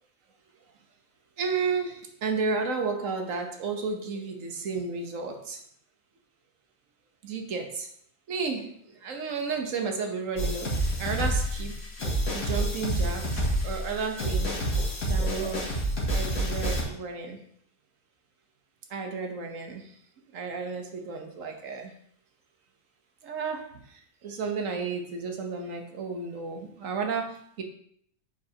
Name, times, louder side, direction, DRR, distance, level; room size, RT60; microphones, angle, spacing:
voice 1, 1.4-5.6 7.2-7.9 8.3-11.7 12.3-14.8 15.1-15.7 16.1-17.4 18.9-19.9 20.3-21.9 23.2-23.6 24.2-27.6, right 4 dB, 65° right, 4 dB, 1.3 m, -32 dB
sound 1, 10.4-16.8, right 1 dB, 80° left, 2.0 m, -28 dB
8.6 x 5.1 x 2.8 m, 0.67 s
omnidirectional pair, 1.5 m